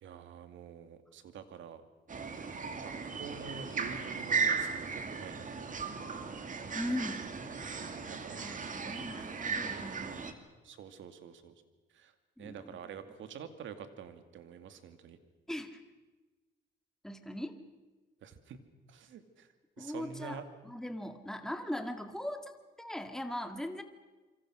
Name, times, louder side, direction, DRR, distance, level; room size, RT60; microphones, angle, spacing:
voice 1, 0.0-1.8 2.8-5.7 7.8-8.4 8.8-9.0 10.6-11.5 11.9-12.1 12.4-15.2 18.2-18.6 18.9-19.5 19.8-20.4, right 7 dB, 75° right, 9 dB, 2.3 m, -47 dB
sound 1, 2.1-10.3, right 5 dB, 40° right, 2.5 m, -36 dB
voice 2, 6.7-7.3 8.4-10.2 12.4-12.8 15.5-15.8 17.0-17.6 19.8-23.8, left 1 dB, ahead, 7 dB, 2.0 m, -40 dB
27.0 x 25.0 x 6.3 m, 1.2 s
cardioid pair, 90°, 20 cm